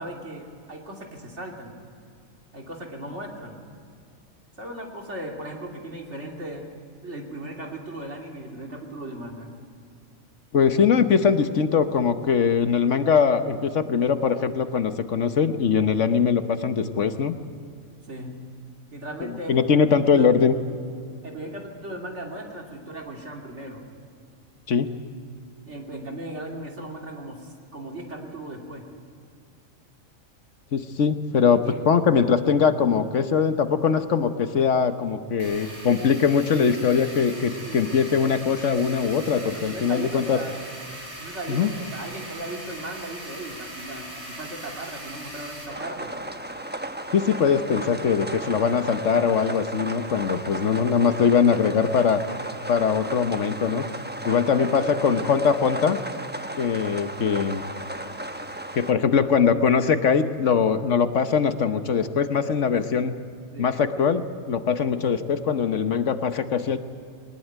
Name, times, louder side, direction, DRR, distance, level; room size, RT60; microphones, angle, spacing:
voice 1, 0.0-1.8 2.5-3.6 4.6-6.7 7.0-9.5 18.1-18.3 18.9-19.6 20.1-20.3 21.2-23.8 25.7-28.8 31.4-31.8 37.6-37.9 39.4-40.5 41.2-46.1 54.5-55.4 59.2-59.3 63.5-63.7, right 1 dB, 55° right, 1 dB, 3.1 m, -37 dB
voice 2, 10.5-17.4 19.2-20.5 24.7-24.9 30.7-31.6 31.9-40.4 41.5-41.7 47.1-52.2 52.7-53.9 54.2-56.0 56.6-57.6 58.7-63.1 63.6-66.8, left 6 dB, 65° left, 10 dB, 1.3 m, -21 dB
sound 1, 35.4-45.7, right 1 dB, 90° right, 6.5 m, -40 dB
sound 2, 45.7-58.9, right 1 dB, 10° right, 0.8 m, -35 dB
21.0 x 19.5 x 9.2 m, 2.4 s
omnidirectional pair, 1.4 m